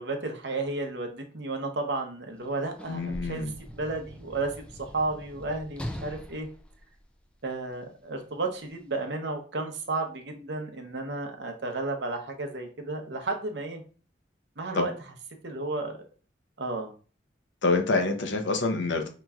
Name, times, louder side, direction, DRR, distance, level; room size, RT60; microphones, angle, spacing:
voice 1, 0.0-4.5 4.8-6.5 7.4-13.8 14.6-14.9 15.4-16.0 16.6-16.9, right 3 dB, 65° right, 4 dB, 0.8 m, -33 dB
Sliding door / Slam, 2.3-7.7 8.6-8.8, equal, 5° left, 0.3 m, -42 dB
voice 2, 2.9-3.5 14.7-14.9 17.6-19.1, left 3 dB, 80° left, 6 dB, 0.7 m, -26 dB
5.5 x 3.0 x 2.4 m, 0.38 s
head